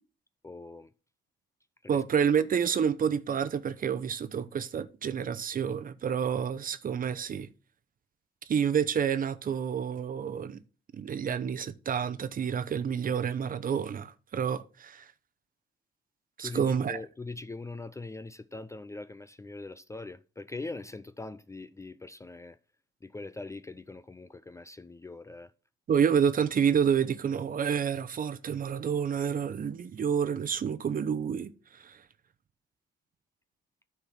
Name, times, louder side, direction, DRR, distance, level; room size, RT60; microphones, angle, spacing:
voice 1, 0.4-0.9 1.8-2.0 16.4-22.6 23.0-25.5, left 3 dB, 15° left, 0.4 m, -42 dB
voice 2, 1.9-7.5 8.5-10.6 11.0-15.1 16.4-17.0 25.9-32.0, right 7 dB, 45° right, 0.7 m, -29 dB
9.9 x 4.4 x 6.0 m
cardioid pair, 90°, 20 cm